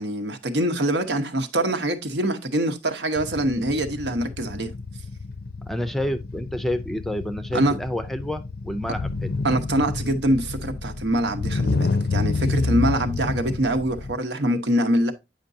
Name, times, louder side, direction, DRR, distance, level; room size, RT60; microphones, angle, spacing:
voice 1, 0.0-4.7 7.5-7.8 9.4-15.1, right 1 dB, 85° right, 1.0 m, -24 dB
sound 1, 3.2-14.1, left 3 dB, 60° left, 0.5 m, -29 dB
voice 2, 5.6-9.3, left 1 dB, ahead, 0.4 m, -29 dB
8.8 x 5.2 x 2.6 m
head